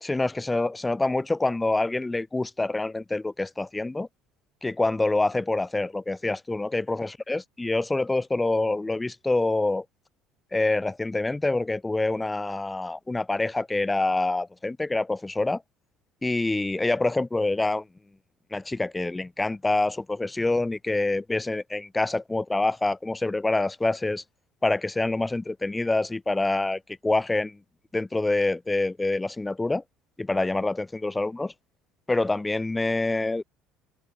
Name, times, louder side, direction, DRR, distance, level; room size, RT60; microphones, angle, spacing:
voice 1, 0.0-4.1 4.6-9.8 10.5-15.6 16.2-17.8 18.5-24.2 24.6-27.6 27.9-29.8 30.2-31.5 32.1-33.4, left 2 dB, 15° left, 0.5 m, -26 dB
open air
supercardioid pair, 75°, 0 cm